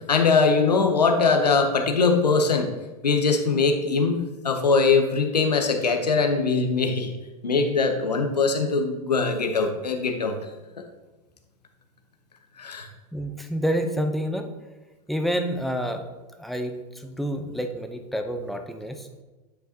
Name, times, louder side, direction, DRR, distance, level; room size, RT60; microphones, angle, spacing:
voice 1, 0.1-2.7 3.0-7.1 7.4-10.3 12.6-12.9, left 4 dB, 85° left, 5 dB, 0.8 m, -21 dB
voice 2, 13.1-14.4 15.1-16.0 16.4-19.1, equal, ahead, 5 dB, 0.7 m, -28 dB
9.2 x 5.5 x 2.8 m, 1.2 s
figure-of-eight pair, 95°, 20 cm